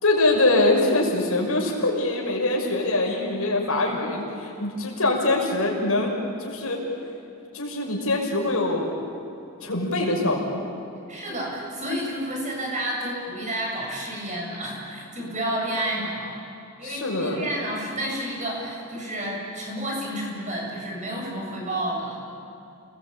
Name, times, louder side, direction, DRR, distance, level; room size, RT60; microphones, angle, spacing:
voice 1, 0.0-6.1 6.4-6.8 7.5-9.0 9.6-10.6 16.8-17.4, left 2 dB, 70° left, 0 dB, 5.8 m, -23 dB
voice 2, 11.1-16.4 16.8-22.2, right 1 dB, 35° right, -2 dB, 7.7 m, -30 dB
29.5 x 20.5 x 8.8 m, 2.7 s
head